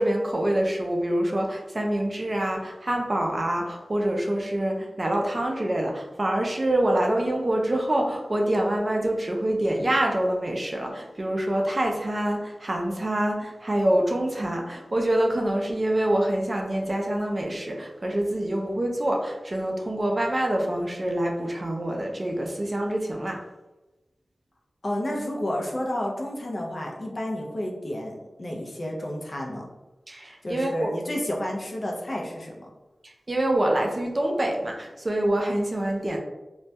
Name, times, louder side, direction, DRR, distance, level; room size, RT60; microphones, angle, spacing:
voice 1, 0.0-23.4 30.1-31.0 33.0-36.2, right 1 dB, 35° right, 1 dB, 0.4 m, -26 dB
voice 2, 24.8-29.6 30.4-32.7, left 1 dB, 50° left, -1 dB, 0.5 m, -31 dB
2.2 x 2.1 x 2.7 m, 1.1 s
wide cardioid pair, 75°, 0 cm